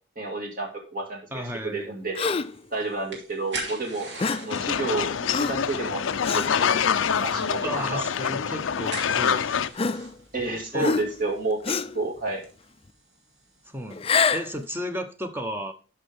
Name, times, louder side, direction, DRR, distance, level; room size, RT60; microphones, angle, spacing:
voice 1, 0.2-2.3 2.7-4.1 4.4-6.8 7.2-7.6 7.9-8.0 10.3-12.4, right 2 dB, 45° right, 1 dB, 2.1 m, -30 dB
voice 2, 1.3-1.9 7.6-9.7 10.7-10.9 13.7-15.7, equal, 10° right, 7 dB, 0.9 m, -33 dB
Gasp, 2.2-2.6 4.2-4.6 5.3-5.7 6.2-6.5 7.2-7.4 8.5-8.6 9.8-10.4 10.8-11.3 11.6-12.0 13.9-14.5, left 5 dB, 30° left, 0.4 m, -26 dB
sound 1, 2.3-14.8, right 3 dB, 65° right, 3.0 m, -44 dB
sound 2, 4.5-9.7, left 7 dB, 85° left, 0.5 m, -25 dB
12.0 x 5.6 x 3.5 m, 0.36 s
head